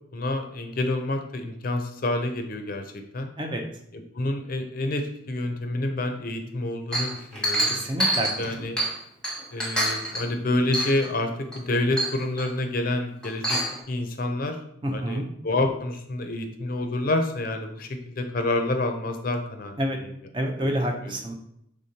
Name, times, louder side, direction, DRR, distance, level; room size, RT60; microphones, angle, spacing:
voice 1, 0.1-3.3 3.9-7.7 8.4-8.8 9.5-13.6 13.9-14.6 14.9-19.7 20.0-20.1 20.6-20.7, left 2 dB, 45° left, 5 dB, 0.5 m, -28 dB
Chink clink, 6.9-9.0 9.2-10.3 10.7-11.1 11.5-11.6 12.0-12.5 13.2-13.8, right 1 dB, 5° left, 0.9 m, -26 dB
voice 2, 7.7-8.3 8.6-8.7 14.8-15.2 19.8-20.0 20.3-21.4, equal, 25° right, 3 dB, 0.5 m, -28 dB
5.0 x 3.6 x 2.8 m, 0.75 s
head